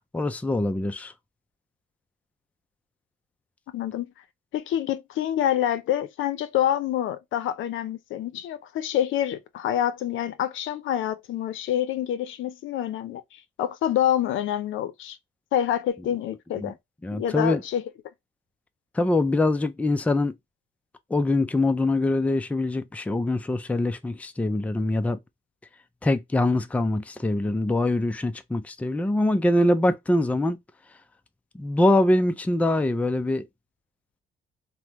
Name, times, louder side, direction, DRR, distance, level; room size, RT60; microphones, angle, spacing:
voice 1, 0.1-1.1 16.6-16.7 17.0-17.6 18.9-20.3 21.1-25.2 26.0-30.6 31.5-33.4, left 2 dB, 5° left, 0.4 m, -23 dB
voice 2, 3.7-4.1 4.5-15.2 15.5-16.8 17.1-17.8, left 11 dB, 75° left, 0.5 m, -27 dB
3.3 x 2.1 x 2.9 m
cardioid pair, 90°, 20 cm